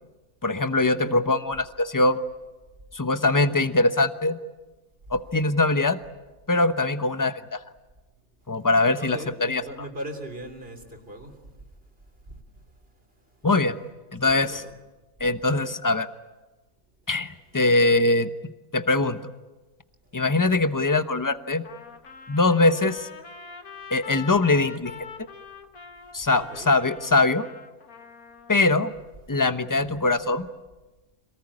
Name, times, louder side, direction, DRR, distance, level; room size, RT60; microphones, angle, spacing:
voice 1, 0.4-2.2 2.9-4.4 5.1-6.0 6.5-7.6 8.5-9.6 13.4-13.8 14.1-14.6 15.2-16.1 17.1-18.3 18.7-19.2 20.1-21.6 22.3-23.1 23.9-24.9 26.1-27.5 28.5-28.9 29.3-30.5, left 2 dB, 15° left, 10 dB, 0.9 m, -22 dB
voice 2, 1.0-1.3 9.0-11.4 14.2-14.8 26.4-26.7, right 1 dB, 40° right, 5 dB, 3.6 m, -39 dB
Trumpet, 21.6-28.7, left 6 dB, 80° left, 2.1 m, -43 dB
27.0 x 19.0 x 9.8 m, 1.2 s
omnidirectional pair, 1.5 m